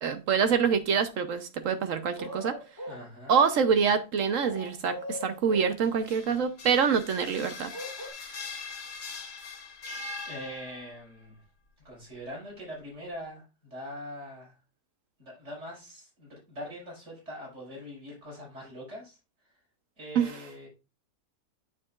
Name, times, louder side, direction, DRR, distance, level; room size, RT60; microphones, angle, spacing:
voice 1, 0.0-2.6 3.3-7.7 20.1-20.4, right 6 dB, 65° right, 0.8 m, -26 dB
sound 1, 2.2-3.1 4.3-5.7 7.7-8.1, left 1 dB, 10° left, 1.5 m, -39 dB
voice 2, 2.9-3.4 9.2-9.8 10.3-11.4 11.8-14.6 15.2-19.2 20.0-20.7, equal, 40° right, 5.6 m, -43 dB
sound 2, 5.8-11.0, left 4 dB, 45° left, 1.1 m, -41 dB
8.3 x 7.2 x 2.3 m
omnidirectional pair, 1.9 m